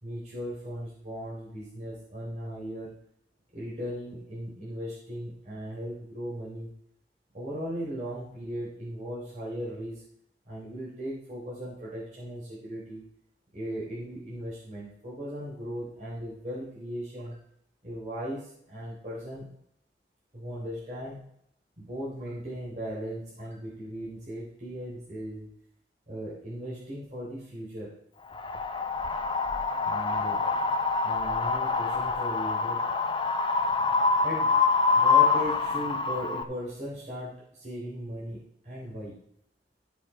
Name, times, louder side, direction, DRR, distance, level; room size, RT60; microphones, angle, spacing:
voice 1, 0.0-2.9 3.5-6.7 7.3-10.0 10.5-13.0 13.5-17.4 17.8-19.5 20.3-21.2 21.8-25.5 26.1-27.9 29.8-30.4 31.0-32.8 34.2-34.5 34.9-38.4 38.6-39.2, equal, 40° right, -8 dB, 3.5 m, -37 dB
Wind, 28.3-36.4, left 4 dB, 25° left, 0.6 m, -26 dB
14.5 x 5.4 x 4.9 m, 0.72 s
head